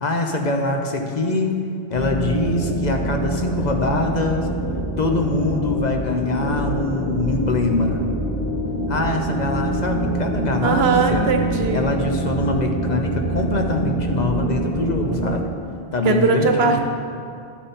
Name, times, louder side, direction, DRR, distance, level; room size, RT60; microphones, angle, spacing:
voice 1, 0.0-1.6 1.9-4.5 5.0-8.1 8.9-11.3 11.7-15.5 15.9-16.8, left 2 dB, 50° left, 3 dB, 0.8 m, -23 dB
sound 1, 1.9-15.4, right 2 dB, 65° left, 1.9 m, -25 dB
voice 2, 10.6-11.8 16.0-16.8, right 4 dB, 80° right, 5 dB, 1.1 m, -19 dB
11.0 x 7.4 x 4.2 m, 2.4 s
omnidirectional pair, 1.0 m